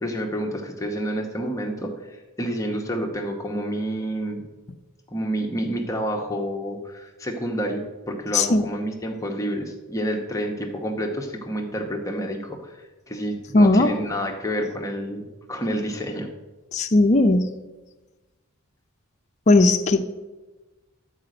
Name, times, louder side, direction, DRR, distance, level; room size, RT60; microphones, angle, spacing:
voice 1, 0.0-4.4 5.1-16.3, equal, 15° left, 1 dB, 0.9 m, -29 dB
voice 2, 8.3-8.7 13.5-13.9 16.7-17.5 19.5-20.1, left 2 dB, 35° left, 4 dB, 0.5 m, -17 dB
11.5 x 4.9 x 7.6 m, 1.2 s
head